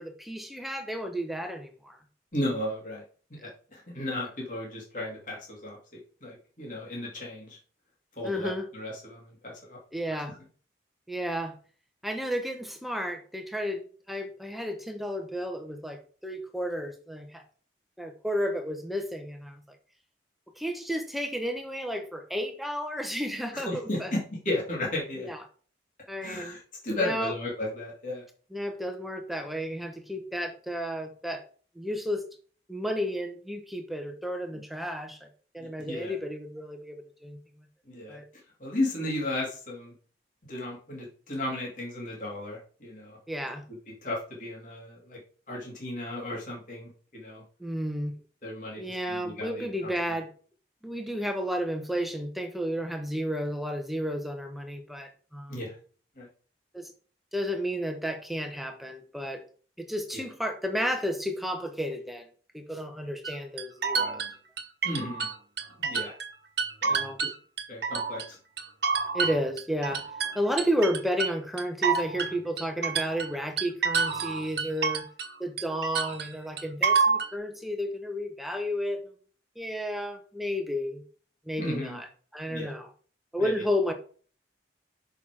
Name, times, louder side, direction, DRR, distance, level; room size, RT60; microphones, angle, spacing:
voice 1, 0.0-2.0 8.2-8.7 9.9-10.3 11.1-11.6 12.0-17.4 18.0-19.8 20.6-24.1 25.2-25.4 26.1-26.6 27.0-27.3 28.5-31.4 31.8-32.2 32.7-35.3 35.5-37.4 38.1-38.2 43.3-43.6 47.6-48.1 48.8-50.3 50.8-55.6 56.7-56.9 57.3-59.4 59.8-62.3 62.5-64.2 66.9-67.2 69.1-70.0 70.3-75.1 75.4-79.0 79.6-81.0 81.5-82.1 82.3-82.9 83.3-83.9, equal, ahead, 5 dB, 0.9 m, -32 dB
voice 2, 2.3-3.0 3.3-5.8 6.2-7.6 8.2-9.8 10.1-10.4 23.5-25.3 26.2-28.2 35.6-36.1 37.9-38.2 38.6-39.9 40.5-43.2 44.0-45.2 45.5-47.4 48.4-49.9 55.5-55.8 56.2-56.3 60.1-60.2 64.8-65.3 65.8-66.1 66.8-67.3 67.7-68.4 81.6-82.0 82.5-82.7 83.4-83.5, left 1 dB, 45° left, -2 dB, 2.5 m, -34 dB
sound 1, 63.2-66.3 66.6-68.3 68.6-75.3 75.6-77.3, right 5 dB, 65° right, 1.1 m, -28 dB
6.7 x 5.8 x 4.8 m, 0.42 s
head